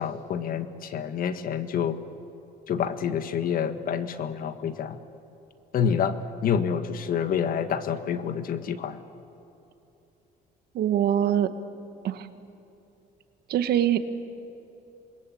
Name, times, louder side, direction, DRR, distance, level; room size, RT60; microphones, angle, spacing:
voice 1, 0.0-2.0 2.7-5.0 5.7-6.2 6.4-9.0, left 7 dB, 55° left, 10 dB, 1.6 m, -28 dB
voice 2, 10.7-11.5 12.0-12.3 13.5-14.0, right 10 dB, 70° right, 10 dB, 1.5 m, -23 dB
27.5 x 21.5 x 8.6 m, 2.8 s
cardioid pair, 110°, 17 cm